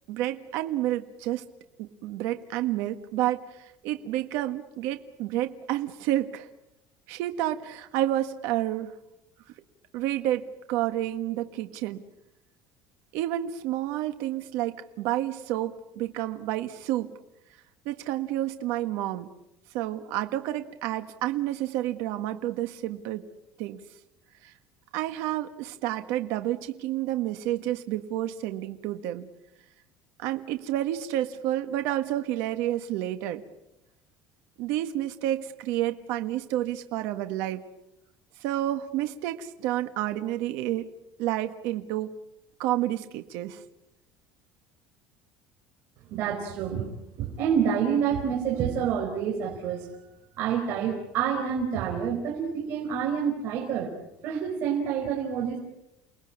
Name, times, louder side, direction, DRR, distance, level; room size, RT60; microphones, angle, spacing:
voice 1, 0.1-1.4 1.8-6.5 7.1-8.9 9.9-12.0 13.1-17.1 17.8-19.3 19.7-23.2 23.6-23.8 24.4-24.5 24.9-29.3 30.2-33.4 34.6-37.6 38.4-40.9 41.2-42.1 42.6-43.6, right 13 dB, 75° right, 8 dB, 1.5 m, -30 dB
voice 2, 46.1-46.9 47.2-49.9 50.4-53.9 54.2-55.6, right 7 dB, 55° right, 1 dB, 4.5 m, -28 dB
29.5 x 20.0 x 8.7 m, 0.92 s
cardioid pair, 155°, 5 cm